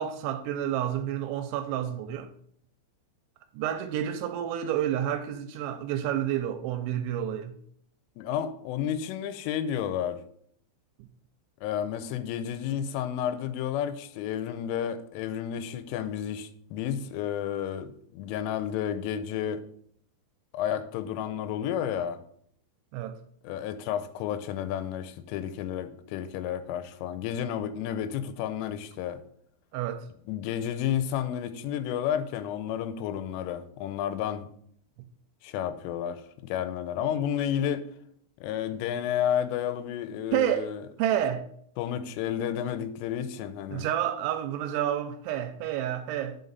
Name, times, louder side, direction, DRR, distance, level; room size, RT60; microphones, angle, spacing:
voice 1, 0.0-2.3 3.5-7.6 22.9-23.2 29.7-30.1 40.3-40.7 41.0-41.4 43.7-46.4, right 11 dB, 85° right, 2.8 m, -29 dB
voice 2, 8.2-10.2 11.6-19.6 20.5-22.2 23.4-29.2 30.3-34.5 35.4-37.9 38.4-40.8 41.8-43.9, left 9 dB, 90° left, 3.2 m, -31 dB
9.2 x 5.8 x 4.0 m
omnidirectional pair, 5.6 m